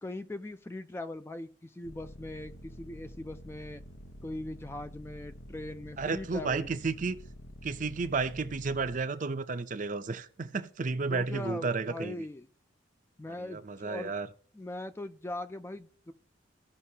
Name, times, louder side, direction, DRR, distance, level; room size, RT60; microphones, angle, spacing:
voice 1, 0.0-3.8 4.2-6.7 11.1-12.5 13.2-14.1 14.5-16.1, left 1 dB, 15° left, 0.3 m, -40 dB
sound 1, 1.8-9.0, equal, 80° left, 0.8 m, -48 dB
voice 2, 6.0-7.2 7.6-12.3 13.4-14.3, right 4 dB, 45° right, 0.5 m, -32 dB
15.5 x 5.5 x 2.8 m
head